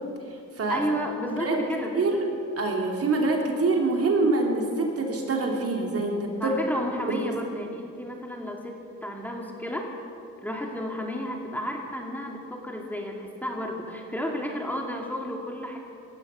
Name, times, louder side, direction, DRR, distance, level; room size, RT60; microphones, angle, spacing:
voice 1, 0.7-2.2 6.4-10.0 10.4-15.8, equal, 5° left, 0 dB, 2.3 m, -32 dB
voice 2, 2.6-6.6 7.1-7.2, right 3 dB, 50° right, 1 dB, 2.9 m, -25 dB
18.0 x 13.5 x 5.6 m, 2.5 s
cardioid pair, 90°, 30 cm